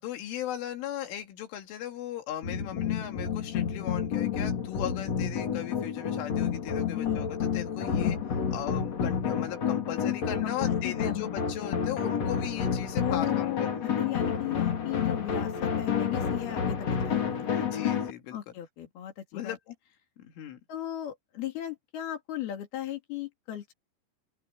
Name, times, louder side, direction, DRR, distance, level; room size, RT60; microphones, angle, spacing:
voice 1, 0.0-8.2 8.5-13.9 17.6-18.4 19.3-19.6 20.2-20.6, left 11 dB, 80° left, 4.8 m, -37 dB
sound 1, 2.4-18.1, left 7 dB, 40° left, 3.3 m, -30 dB
voice 2, 6.9-7.3 10.4-11.3 13.0-17.7 18.3-19.6 20.7-23.7, left 13 dB, 60° left, 3.9 m, -36 dB
open air
omnidirectional pair, 5.6 m